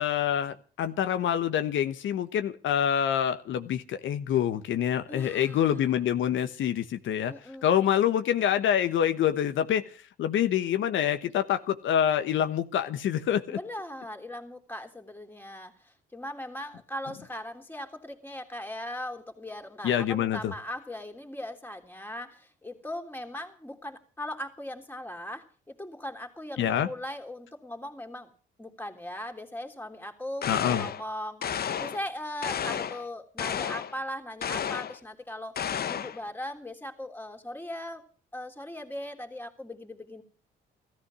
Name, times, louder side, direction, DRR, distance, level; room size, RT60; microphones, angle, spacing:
voice 1, 0.0-7.3 7.6-9.9 10.2-13.6 19.8-20.5 26.6-26.9 30.5-30.8, left 9 dB, 75° left, 9 dB, 1.2 m, -26 dB
voice 2, 5.1-6.0 7.3-7.7 13.5-28.3 28.6-38.1 38.3-40.2, left 1 dB, 10° left, 6 dB, 3.3 m, -39 dB
sound 1, 30.4-31.0 31.4-32.0 32.4-33.0 33.4-33.9 34.4-35.0 35.6-36.2, left 8 dB, 50° left, 1.0 m, -32 dB
16.5 x 14.0 x 6.2 m, 0.39 s
cardioid pair, 90°, 20 cm